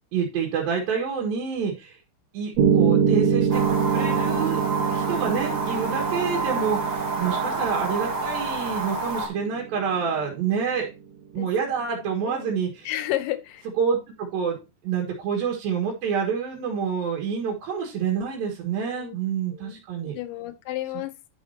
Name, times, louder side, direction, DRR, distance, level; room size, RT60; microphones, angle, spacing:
voice 1, 0.1-2.0 2.3-3.6 3.9-4.6 4.9-10.9 11.3-12.9 13.8-14.6 14.8-20.2, right 6 dB, 80° right, 3.4 m, -27 dB
Piano, 2.6-10.6, right 7 dB, 60° right, 1.9 m, -25 dB
sound 1, 3.5-9.3, right 3 dB, 35° right, 2.0 m, -28 dB
voice 2, 11.4-11.7 12.0-12.5 12.8-13.7 18.9-19.1 19.5-21.1, left 14 dB, 75° left, 2.3 m, -32 dB
11.0 x 6.5 x 2.8 m
omnidirectional pair, 4.1 m